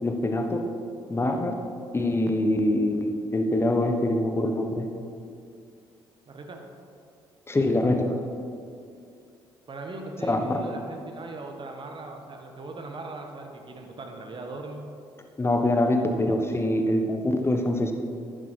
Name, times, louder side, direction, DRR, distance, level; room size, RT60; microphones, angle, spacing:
voice 1, 0.0-0.7 1.1-1.5 1.9-4.9 7.5-8.2 10.3-10.6 15.4-17.9, left 1 dB, 20° left, 5 dB, 1.2 m, -24 dB
voice 2, 6.3-6.6 9.7-14.9, right 2 dB, 40° right, 3 dB, 1.7 m, -39 dB
10.5 x 9.4 x 4.7 m, 2.4 s
hypercardioid pair, 50°, 13 cm